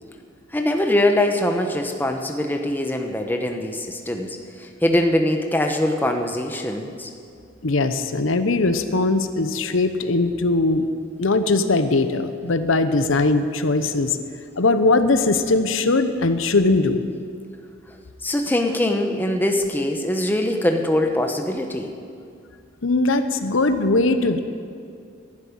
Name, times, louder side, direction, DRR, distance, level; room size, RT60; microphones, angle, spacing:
voice 1, 0.5-7.1 18.2-21.9, left 1 dB, 10° left, 4 dB, 0.9 m, -22 dB
voice 2, 7.6-10.9 11.2-14.2 14.6-17.0 22.8-24.4, left 3 dB, 80° left, 9 dB, 0.8 m, -20 dB
11.5 x 11.0 x 9.4 m, 2.3 s
head